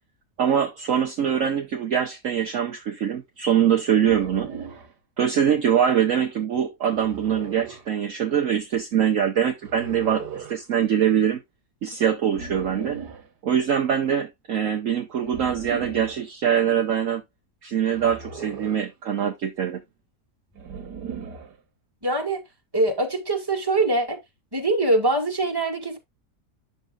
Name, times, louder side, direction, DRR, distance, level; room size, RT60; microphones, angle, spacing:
voice 1, 0.4-4.5 5.2-11.4 11.8-13.0 13.4-17.2 17.6-19.8, right 8 dB, 55° right, 1.2 m, -23 dB
sound 1, 4.0-4.9 6.9-7.9 9.6-10.6 12.3-13.3 15.2-16.2 17.9-18.9 20.6-21.6, right 5 dB, 80° right, 2.0 m, -37 dB
voice 2, 22.0-22.4 22.7-24.2 24.5-26.0, right 2 dB, 15° right, 2.2 m, -23 dB
9.6 x 6.7 x 2.4 m
omnidirectional pair, 1.7 m